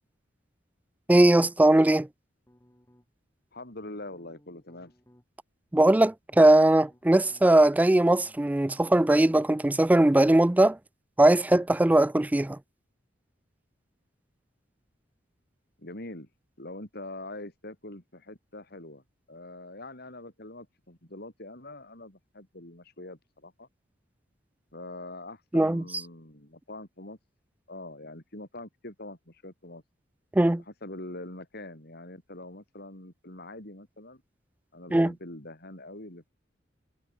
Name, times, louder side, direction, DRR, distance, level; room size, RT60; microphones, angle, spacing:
voice 1, 1.1-2.1 5.7-10.8 11.2-12.6 25.5-25.8 30.3-30.6 34.9-35.1, right 1 dB, 10° right, 0.3 m, -20 dB
sound 1, 2.5-3.3 3.8-5.2 5.7-7.7 7.9-9.0, equal, 15° left, 4.2 m, -60 dB
voice 2, 3.5-4.9 15.8-16.3 16.6-23.7 24.7-27.2 27.7-29.8 30.7-34.2 34.7-36.2, left 2 dB, 55° left, 5.4 m, -43 dB
head